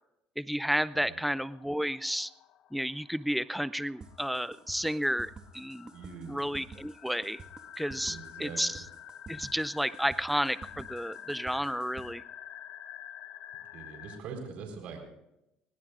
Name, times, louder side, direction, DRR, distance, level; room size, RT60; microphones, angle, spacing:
voice 1, 0.4-2.3 2.7-5.9 6.3-7.4 7.8-8.8 9.3-12.2, equal, ahead, 16 dB, 0.4 m, -32 dB
sound 1, 1.4-14.2, left 10 dB, 65° left, 1.1 m, -49 dB
sound 2, 4.0-12.1, right 4 dB, 30° right, 1.5 m, -49 dB
voice 2, 5.9-6.4 8.0-8.6 13.7-15.1, right 5 dB, 60° right, 3 dB, 4.3 m, -43 dB
21.0 x 19.5 x 2.5 m, 0.88 s
supercardioid pair, 95°, 2 cm